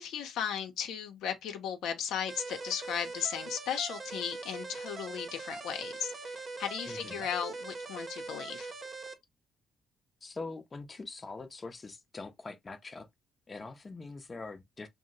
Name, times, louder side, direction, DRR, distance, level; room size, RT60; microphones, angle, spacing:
voice 1, 0.0-8.7, left 8 dB, 85° left, 0.6 m, -36 dB
sound 1, 2.3-9.1, right 3 dB, 40° right, 0.6 m, -42 dB
voice 2, 6.9-7.3 10.2-13.1 13.5-14.9, left 3 dB, 30° left, 0.6 m, -43 dB
2.7 x 2.0 x 3.9 m
cardioid pair, 90°, 0 cm